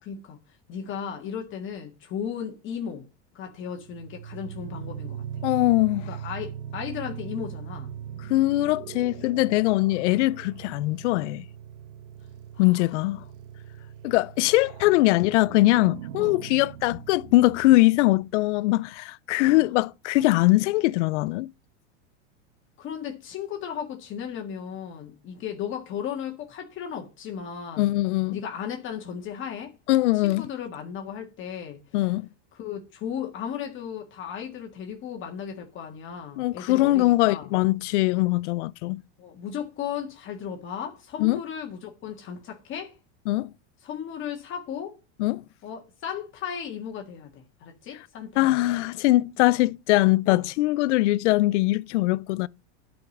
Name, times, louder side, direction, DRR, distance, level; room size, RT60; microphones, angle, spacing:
voice 1, 0.0-0.4 0.7-3.1 3.3-5.2 6.1-7.9 12.5-12.9 16.2-16.4 19.4-19.7 22.8-27.9 28.3-29.8 30.1-32.1 32.5-37.5 39.2-42.9 43.8-45.0 45.6-48.7 50.3-50.4, left 8 dB, 35° left, 1.7 m, -35 dB
sound 1, 3.7-18.3, right 9 dB, 70° right, 0.8 m, -40 dB
voice 2, 5.4-6.1 8.3-11.4 12.6-13.2 14.0-21.5 27.8-28.4 29.9-30.5 31.9-32.3 36.4-39.0 41.2-41.4 43.3-43.5 45.2-45.4 48.4-52.5, left 18 dB, 80° left, 0.6 m, -22 dB
10.5 x 5.1 x 7.1 m
supercardioid pair, 150°, 35 cm